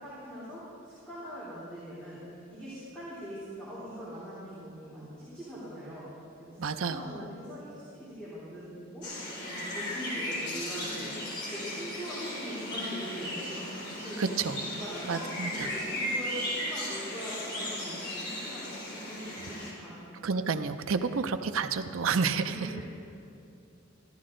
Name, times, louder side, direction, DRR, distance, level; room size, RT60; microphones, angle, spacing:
voice 1, 0.0-6.0 6.4-6.6 6.8-9.1 9.4-14.2 14.7-19.9 22.5-22.8, equal, 5° left, -13 dB, 3.2 m, -42 dB
voice 2, 6.6-7.2 14.2-14.8 15.1-15.7 20.2-22.7, right 5 dB, 75° right, 8 dB, 0.5 m, -30 dB
sound 1, 9.0-19.7, left 1 dB, 55° left, 3.1 m, -36 dB
13.5 x 13.0 x 3.8 m, 2.7 s
head